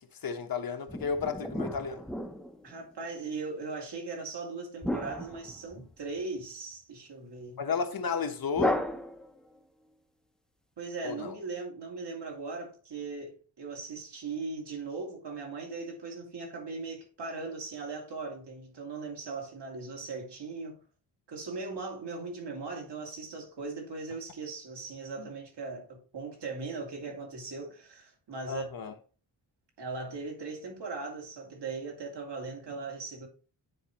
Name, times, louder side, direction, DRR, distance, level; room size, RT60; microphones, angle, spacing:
voice 1, 0.2-2.0 7.6-8.8 11.0-11.4 25.2-25.3 28.5-28.9, left 5 dB, 55° left, 1.1 m, -32 dB
sound 1, 0.9-2.9 4.8-6.2 8.5-9.6, left 1 dB, ahead, 0.6 m, -34 dB
voice 2, 2.6-7.6 10.8-20.8 21.3-28.7 29.8-33.3, right 4 dB, 70° right, 2.3 m, -39 dB
9.8 x 4.2 x 3.0 m
wide cardioid pair, 120°, 42 cm